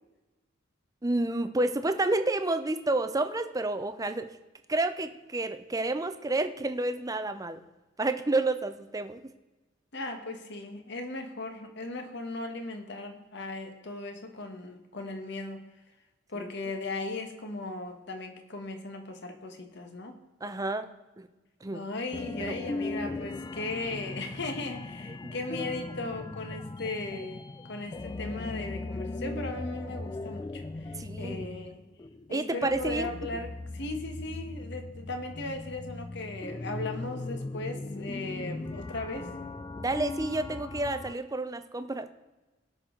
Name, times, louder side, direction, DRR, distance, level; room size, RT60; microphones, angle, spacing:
voice 1, 1.0-4.3 4.7-7.6 8.0-9.2 16.3-16.5 20.4-20.9 21.2-21.3 21.6-21.8 22.4-22.9 25.1-25.3 31.0-31.5 32.3-33.1 39.8-42.1, right 2 dB, 20° right, 9 dB, 0.6 m, -30 dB
voice 2, 9.9-15.6 16.3-20.1 21.7-31.8 32.3-39.3, left 2 dB, 60° left, 5 dB, 1.4 m, -37 dB
sound 1, 22.1-41.2, left 2 dB, 20° left, 0.3 m, -39 dB
18.5 x 6.2 x 3.9 m, 1.1 s
head